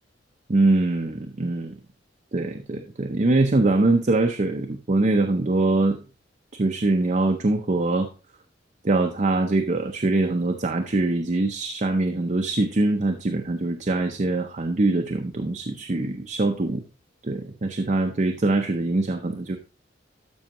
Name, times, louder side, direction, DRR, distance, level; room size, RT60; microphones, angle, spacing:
voice 1, 0.5-1.7 2.3-6.0 6.5-8.1 8.8-16.8 17.2-19.6, right 2 dB, 40° right, 5 dB, 0.6 m, -23 dB
12.5 x 5.5 x 2.9 m, 0.33 s
head